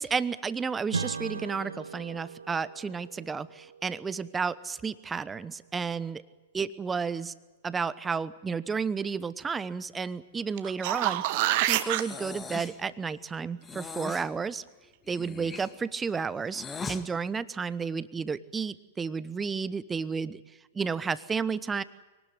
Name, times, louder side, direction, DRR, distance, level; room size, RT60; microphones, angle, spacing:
voice 1, 0.0-6.2 6.5-7.3 7.6-14.6 15.1-20.4 20.7-21.8, right 5 dB, 15° right, 17 dB, 1.0 m, -32 dB
Strum, 0.9-5.8, right 5 dB, 80° right, 1.0 m, -40 dB
sound 1, 10.6-12.0 16.8-16.9, right 15 dB, 50° right, 1.4 m, -26 dB
Breathing, 11.8-12.8 13.6-14.3 15.1-17.0, left 5 dB, 15° left, 1.9 m, -40 dB
23.5 x 19.0 x 9.3 m, 1.2 s
figure-of-eight pair, 105°, 0 cm